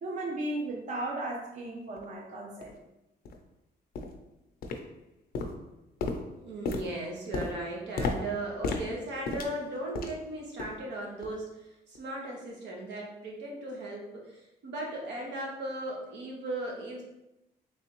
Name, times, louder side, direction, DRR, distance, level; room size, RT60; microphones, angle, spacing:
voice 1, 0.0-2.8, right 2 dB, 45° right, -2 dB, 0.6 m, -35 dB
sound 1, 2.0-2.1 2.6-2.7 3.2-3.4 3.9-4.2 4.6-5.1 5.3-10.3 10.6-10.9 11.2-11.4 11.9-12.0, left 3 dB, 60° left, 0.5 m, -35 dB
voice 2, 6.3-17.0, right 1 dB, 85° right, -2 dB, 1.0 m, -37 dB
3.4 x 3.2 x 2.9 m, 0.93 s
cardioid pair, 160°, 18 cm